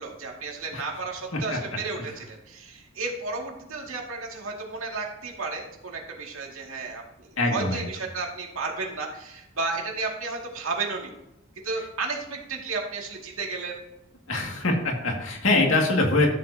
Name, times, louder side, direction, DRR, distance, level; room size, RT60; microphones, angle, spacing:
voice 1, 0.0-11.1 11.6-13.8, right 3 dB, 85° right, 0 dB, 2.2 m, -33 dB
voice 2, 7.4-7.8 14.3-16.3, left 2 dB, 75° left, 1 dB, 2.1 m, -23 dB
13.0 x 7.7 x 2.8 m, 0.86 s
head